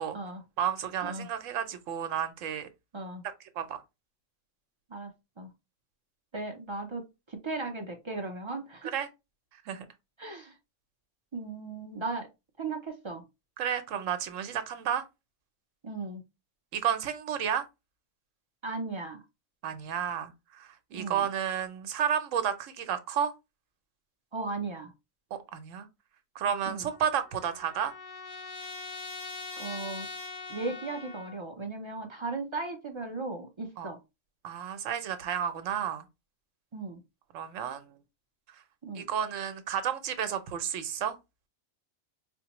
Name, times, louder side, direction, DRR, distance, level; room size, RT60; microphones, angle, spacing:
voice 1, 0.6-2.7 3.2-3.8 8.8-9.1 9.7-9.9 13.6-15.0 16.7-17.7 19.6-23.3 25.3-25.9 26.3-27.9 33.8-33.9 34.4-36.1 37.3-38.0 38.9-41.2, right 8 dB, 80° right, 1.0 m, -32 dB
voice 2, 4.9-5.5 6.3-8.9 10.2-10.5 11.3-12.3 12.6-13.2 15.8-16.2 18.6-19.2 20.9-21.3 24.3-24.9 26.7-26.9 29.6-30.1 30.5-34.0 36.7-37.0 38.8-39.0, right 3 dB, 40° right, 0.4 m, -37 dB
Trumpet, 26.7-31.4, left 4 dB, 45° left, 0.4 m, -42 dB
4.3 x 2.1 x 2.9 m
omnidirectional pair, 1.3 m